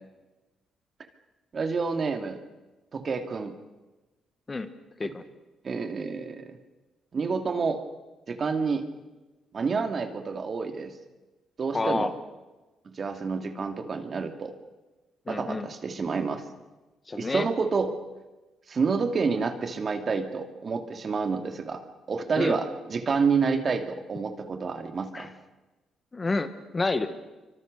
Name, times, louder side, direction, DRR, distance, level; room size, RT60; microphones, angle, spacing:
voice 1, 1.5-2.4 2.9-3.5 5.0-5.1 5.6-6.6 7.1-7.8 8.3-8.8 9.5-10.9 11.6-12.1 12.9-14.5 15.3-16.4 17.1-18.0 18.7-21.8 22.1-25.3, right 5 dB, 45° right, 6 dB, 2.6 m, -28 dB
voice 2, 11.7-12.1 15.3-15.7 17.1-17.5 22.4-22.5 25.1-25.3 26.1-27.1, left 3 dB, 25° left, 10 dB, 1.7 m, -29 dB
26.0 x 24.5 x 6.7 m, 1.1 s
cardioid pair, 90°, 0 cm